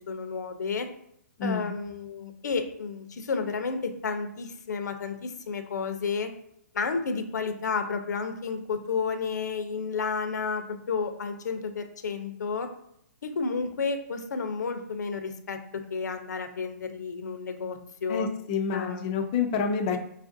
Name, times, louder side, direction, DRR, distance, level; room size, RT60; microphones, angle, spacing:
voice 1, 0.1-0.9 1.4-6.3 6.7-12.7 13.2-18.3 18.7-19.1, left 5 dB, 85° left, 7 dB, 0.6 m, -31 dB
voice 2, 1.4-1.8 18.1-20.0, left 5 dB, 25° left, 4 dB, 0.4 m, -28 dB
5.5 x 2.5 x 2.5 m, 0.72 s
hypercardioid pair, 165°, 9 cm